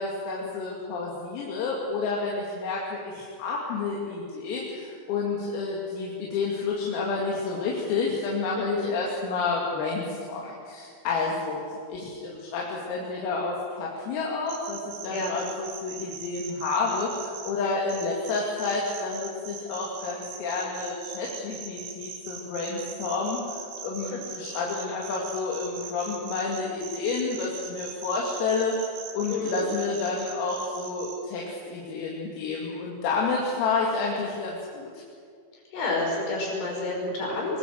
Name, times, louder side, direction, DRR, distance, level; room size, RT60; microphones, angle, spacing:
voice 1, 0.0-34.9, left 4 dB, 80° left, -3 dB, 5.1 m, -30 dB
voice 2, 8.6-8.9 15.1-15.4 24.0-24.2 29.3-29.7 35.7-37.6, left 2 dB, 65° left, -1 dB, 8.0 m, -29 dB
sound 1, 14.5-17.5 17.9-31.2, right 7 dB, 75° right, 5.1 m, -40 dB
24.0 x 20.0 x 8.0 m, 2.2 s
omnidirectional pair, 5.9 m